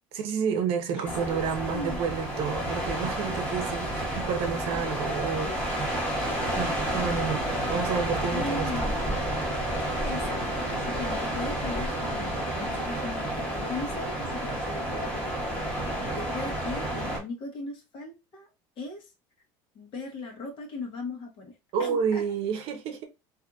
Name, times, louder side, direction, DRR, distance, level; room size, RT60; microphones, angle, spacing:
voice 1, 0.1-5.8 6.6-7.4 7.7-8.7 21.7-23.1, right 6 dB, 60° right, 0.7 m, -30 dB
voice 2, 0.9-2.0 8.3-9.1 10.0-15.4 15.7-18.5 18.8-19.1 19.7-21.5 21.8-22.2, left 3 dB, 50° left, 1.1 m, -38 dB
sound 1, 1.0-17.2, right 1 dB, 15° left, 1.2 m, -30 dB
2.6 x 2.6 x 2.3 m
supercardioid pair, 120°, 11 cm